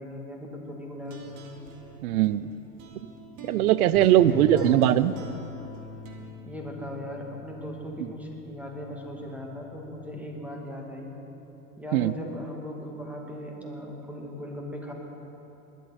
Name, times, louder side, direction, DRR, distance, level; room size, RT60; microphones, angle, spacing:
voice 1, 0.0-1.5 4.1-5.0 6.5-11.2 11.8-14.9, equal, 5° right, -1 dB, 2.3 m, -38 dB
sound 1, 1.0-6.3, right 5 dB, 50° right, 2.2 m, -46 dB
voice 2, 2.0-2.5 3.5-5.1 11.9-12.1, right 12 dB, 70° right, 17 dB, 0.6 m, -20 dB
sound 2, 3.9-10.2, left 9 dB, 45° left, 2.9 m, -43 dB
20.5 x 10.5 x 4.3 m, 3.0 s
hypercardioid pair, 95°, 45 cm